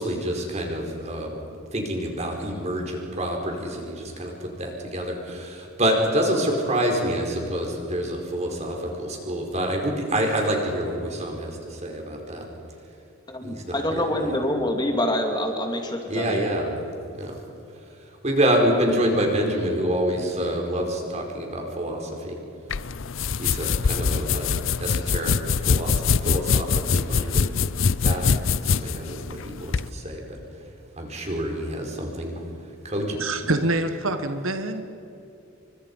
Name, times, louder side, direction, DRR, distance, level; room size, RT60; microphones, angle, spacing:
voice 1, 0.0-1.4 1.7-4.3 4.6-12.5 13.4-14.3 16.1-16.7 17.2-17.4 18.2-22.3 23.4-25.3 25.6-27.5 28.0-28.3 28.6-30.2 31.0-32.3 32.8-33.2, right 1 dB, 30° right, 2 dB, 4.8 m, -27 dB
voice 2, 13.3-16.4, left 1 dB, 20° left, 3 dB, 2.5 m, -26 dB
sound 1, 22.7-29.9, left 5 dB, 70° left, 0.6 m, -23 dB
voice 3, 33.2-34.8, right 2 dB, 75° right, 8 dB, 1.5 m, -25 dB
29.5 x 25.0 x 5.6 m, 2.9 s
head